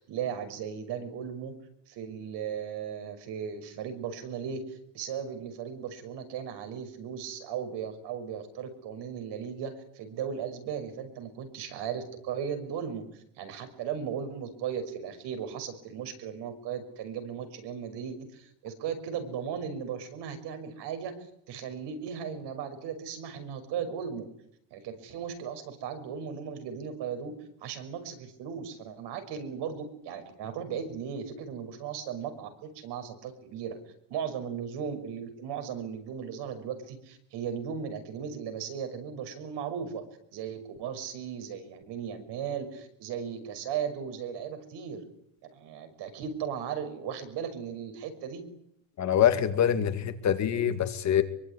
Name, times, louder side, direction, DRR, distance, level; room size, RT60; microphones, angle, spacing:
voice 1, 0.0-1.6 1.9-21.2 21.5-24.3 24.7-27.3 27.6-33.8 34.1-40.0 40.3-45.0 45.4-48.4, right 7 dB, 60° right, 8 dB, 6.1 m, -37 dB
voice 2, 49.0-51.2, left 9 dB, 35° left, 8 dB, 2.3 m, -25 dB
25.0 x 23.5 x 10.0 m, 0.74 s
cardioid pair, 180°, 45 cm